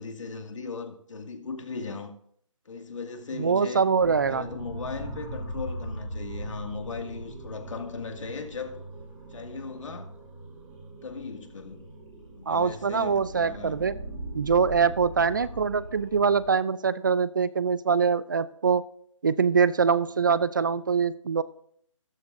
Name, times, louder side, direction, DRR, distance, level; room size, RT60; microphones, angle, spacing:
voice 1, 0.0-2.1 2.7-3.8 4.3-8.8 9.3-10.2 11.0-11.8 12.4-13.8 15.3-15.6, left 4 dB, 65° left, 2.0 m, -38 dB
voice 2, 3.4-4.4 12.5-13.9 14.3-18.8 19.2-21.4, right 5 dB, 40° right, 0.4 m, -24 dB
sound 1, 4.0-16.5, right 1 dB, 10° right, 5.9 m, -40 dB
14.5 x 13.5 x 2.6 m
hypercardioid pair, 165°, 17 cm